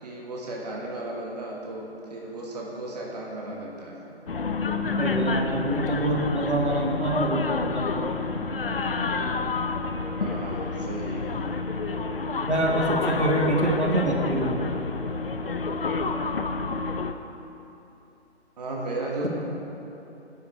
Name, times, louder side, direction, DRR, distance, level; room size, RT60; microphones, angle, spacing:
voice 1, 0.0-4.0 10.2-11.3 18.6-19.3, right 2 dB, 35° right, -2 dB, 1.4 m, -35 dB
sound 1, 4.3-17.1, left 3 dB, 55° left, 0.7 m, -29 dB
voice 2, 4.8-8.2 12.5-14.6, right 1 dB, 85° right, 0 dB, 1.8 m, -25 dB
11.5 x 9.1 x 4.5 m, 2.9 s
figure-of-eight pair, 145°, 34 cm